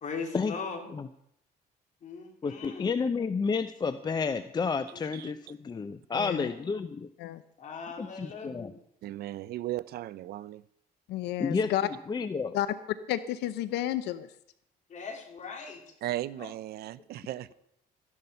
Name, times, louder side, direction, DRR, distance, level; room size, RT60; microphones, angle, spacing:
voice 1, 0.0-0.9 2.0-2.9 4.9-5.0 6.5-6.8 7.6-8.7 14.9-15.9 16.4-16.5, left 5 dB, 45° left, 3.1 m, -40 dB
voice 2, 2.4-7.1 8.0-8.7 11.4-11.7 12.1-12.5, left 5 dB, 25° left, 0.6 m, -30 dB
voice 3, 6.1-6.5 7.2-7.4 11.1-11.9 12.5-12.7 13.1-14.3, left 13 dB, 80° left, 0.7 m, -31 dB
voice 4, 9.0-10.6 16.0-17.5, right 14 dB, 70° right, 0.6 m, -36 dB
14.0 x 11.0 x 5.6 m
cardioid pair, 110°, 17 cm